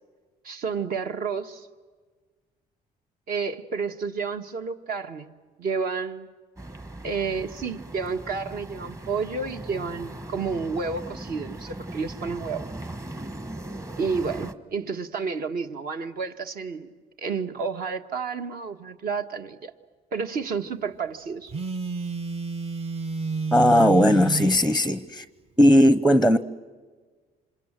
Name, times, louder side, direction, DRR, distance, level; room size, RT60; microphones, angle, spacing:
voice 1, 0.4-1.7 3.3-5.3 5.6-6.3 7.0-12.7 14.0-16.9 17.2-19.7 20.1-21.5, right 5 dB, 60° right, 1.6 m, -30 dB
sound 1, 6.6-14.5, right 1 dB, 20° right, 1.2 m, -39 dB
Telephone, 21.5-24.6, right 4 dB, 35° right, 0.9 m, -30 dB
voice 2, 23.5-25.2 25.6-26.4, equal, ahead, 0.7 m, -18 dB
28.0 x 26.0 x 7.6 m
cardioid pair, 110°, 17 cm